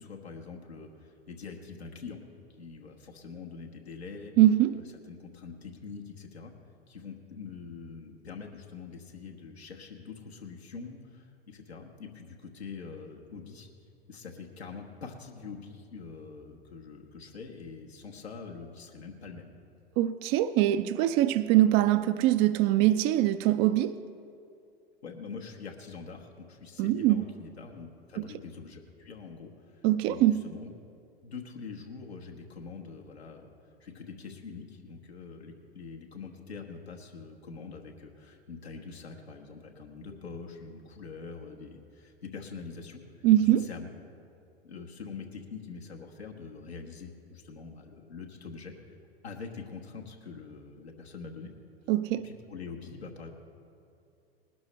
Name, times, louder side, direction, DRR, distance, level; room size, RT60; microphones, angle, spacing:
voice 1, 0.0-2.2 2.6-4.3 4.7-6.5 6.9-13.7 14.1-19.5 25.0-30.7 31.2-33.5 33.8-43.0 43.4-43.9 44.6-48.7 49.2-51.5 52.2-53.3, left 5 dB, 85° left, 1.4 m, -44 dB
voice 2, 4.4-4.7 20.0-24.0 26.8-27.2 28.2-28.3 29.8-30.4 43.2-43.6 51.9-52.3, right 13 dB, 35° right, 0.4 m, -23 dB
19.5 x 12.0 x 3.2 m
hypercardioid pair, 95°, 31 cm